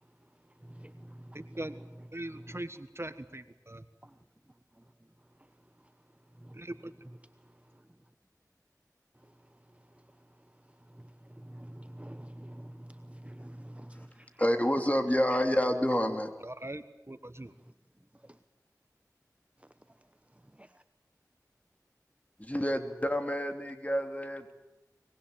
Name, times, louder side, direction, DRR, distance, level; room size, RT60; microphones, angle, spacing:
voice 1, 1.3-1.8 2.1-3.8 6.5-6.9 16.4-17.5, right 1 dB, 40° right, 11 dB, 1.4 m, -41 dB
voice 2, 11.5-12.7 13.2-14.1, right 1 dB, 20° right, 10 dB, 1.0 m, -45 dB
voice 3, 14.4-16.3 22.4-24.5, equal, 20° left, 6 dB, 3.1 m, -28 dB
24.0 x 21.5 x 9.1 m, 0.99 s
wide cardioid pair, 40°, 7 cm